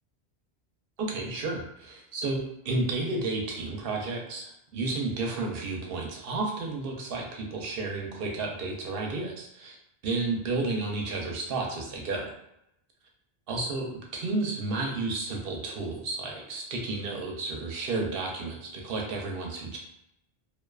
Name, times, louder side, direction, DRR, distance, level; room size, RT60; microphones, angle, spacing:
voice 1, 1.0-9.8 10.0-12.3 13.5-19.8, right 3 dB, 65° right, 0 dB, 0.7 m, -32 dB
2.4 x 2.3 x 2.3 m, 0.78 s
omnidirectional pair, 1.1 m